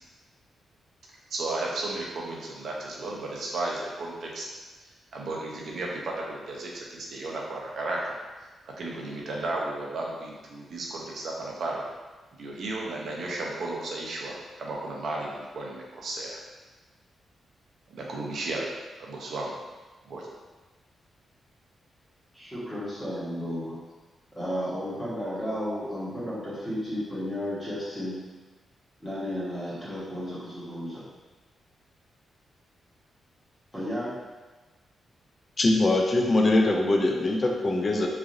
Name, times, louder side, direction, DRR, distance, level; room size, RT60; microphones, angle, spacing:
voice 1, 1.3-4.5 4.8-8.2 8.7-11.8 12.4-16.4 17.9-18.7 19.0-19.6 20.0-20.3, right 2 dB, 60° right, -2 dB, 0.5 m, -34 dB
voice 2, 22.3-23.8 24.4-28.1 29.0-31.0 33.7-34.1, equal, 5° left, -11 dB, 1.0 m, -33 dB
voice 3, 35.6-38.1, left 2 dB, 30° left, 1 dB, 0.3 m, -22 dB
3.1 x 2.4 x 2.5 m, 1.3 s
wide cardioid pair, 155°, 0 cm